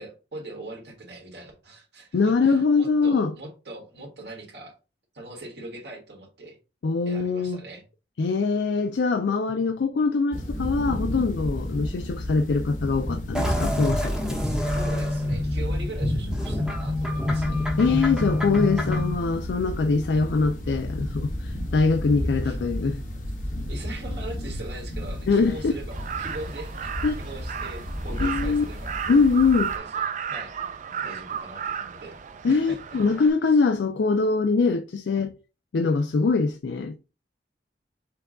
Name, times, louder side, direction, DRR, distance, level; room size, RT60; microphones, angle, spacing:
voice 1, 0.0-4.7 5.1-6.6 7.0-7.8 14.4-17.8 22.4-22.6 23.7-25.9 26.2-28.9 29.7-30.0 30.3-30.5 31.0-32.2 32.4-32.8 33.5-33.6, right 2 dB, 70° right, 1.6 m, -41 dB
voice 2, 2.1-3.3 6.8-7.6 8.2-14.4 17.8-23.0 25.3-25.7 27.0-27.2 28.2-28.6 29.1-29.7 32.4-35.3 35.7-37.0, left 4 dB, 70° left, 0.4 m, -23 dB
sound 1, 10.3-29.8, left 1 dB, 45° left, 1.1 m, -33 dB
sound 2, 13.3-19.1, left 1 dB, 5° right, 0.9 m, -27 dB
Crow, 25.9-33.3, right 7 dB, 45° right, 0.4 m, -34 dB
5.9 x 2.3 x 3.7 m
head